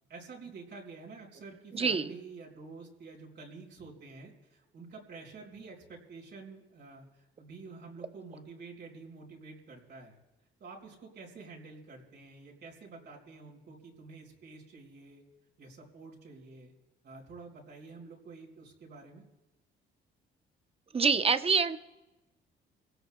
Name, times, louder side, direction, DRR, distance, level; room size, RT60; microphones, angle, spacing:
voice 1, 0.1-10.2 10.6-15.2 15.6-16.7 17.0-19.2, right 4 dB, 60° right, -1 dB, 4.4 m, -49 dB
voice 2, 1.7-2.1 20.9-21.8, right 5 dB, 30° right, 11 dB, 0.7 m, -26 dB
24.5 x 17.0 x 2.2 m, 1.1 s
cardioid pair, 90°, 20 cm